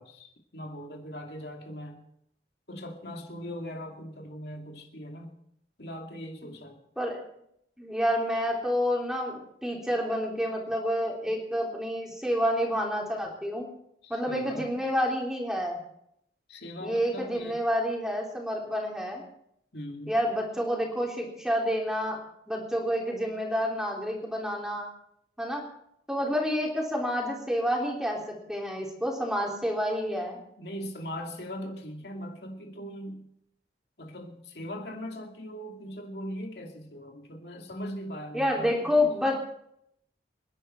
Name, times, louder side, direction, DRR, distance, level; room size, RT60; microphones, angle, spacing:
voice 1, 0.0-2.0 2.7-5.4 5.8-6.8 14.0-14.7 16.5-17.6 19.7-20.2 30.6-33.3 34.0-39.1, equal, 70° left, 2 dB, 2.4 m, -40 dB
voice 2, 7.8-13.7 14.1-15.8 16.8-19.2 20.1-22.2 22.5-24.9 25.4-25.6 26.1-30.4 38.3-39.5, equal, 5° right, -1 dB, 3.5 m, -29 dB
27.5 x 11.0 x 4.5 m, 0.74 s
head